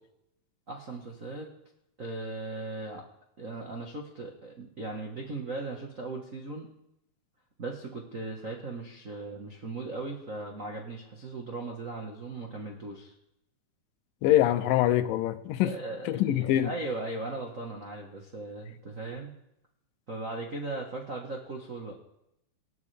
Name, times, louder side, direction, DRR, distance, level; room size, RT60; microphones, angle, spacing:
voice 1, 0.7-1.5 2.0-3.0 3.4-6.7 7.6-13.1 15.6-19.3 20.1-22.0, right 2 dB, 75° right, 0 dB, 0.7 m, -38 dB
voice 2, 14.2-15.7 16.1-16.7, left 13 dB, 85° left, 11 dB, 2.5 m, -24 dB
19.5 x 12.0 x 3.4 m, 0.81 s
omnidirectional pair, 3.9 m